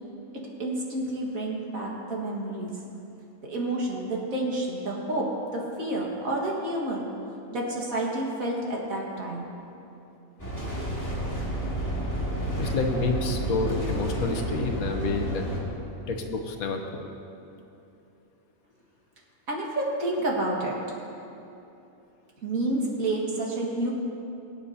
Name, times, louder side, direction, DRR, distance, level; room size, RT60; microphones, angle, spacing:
voice 1, 0.6-2.7 3.4-7.0 7.5-9.5 19.5-20.8 22.4-23.9, right 1 dB, 75° right, -2 dB, 2.2 m, -29 dB
sound 1, 10.4-15.6, equal, 10° left, 2.0 m, -30 dB
voice 2, 12.6-15.4 16.1-17.0, left 3 dB, 85° left, 4 dB, 1.4 m, -29 dB
23.5 x 8.7 x 2.8 m, 2.8 s
omnidirectional pair, 1.5 m